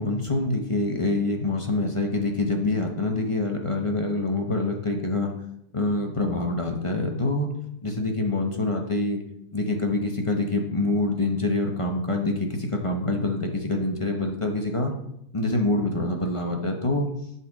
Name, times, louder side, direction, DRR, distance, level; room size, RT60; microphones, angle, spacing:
voice 1, 0.0-5.3 5.7-7.5 7.8-9.2 9.5-14.9 15.3-17.1, left 2 dB, 25° left, 2 dB, 0.7 m, -26 dB
10.5 x 5.9 x 3.6 m, 0.77 s
omnidirectional pair, 1.7 m